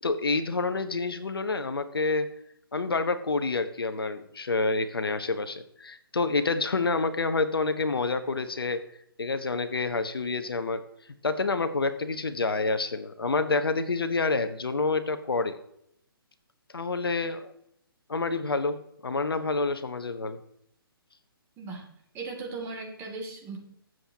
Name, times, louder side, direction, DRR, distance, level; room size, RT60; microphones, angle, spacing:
voice 1, 0.0-2.3 2.7-8.8 9.2-10.8 11.2-15.6 16.7-17.5 18.1-20.4, left 3 dB, 75° left, 10 dB, 1.1 m, -28 dB
voice 2, 22.1-23.6, right 3 dB, 20° right, 0 dB, 2.6 m, -37 dB
20.5 x 7.8 x 2.9 m, 0.73 s
figure-of-eight pair, 135°, 13 cm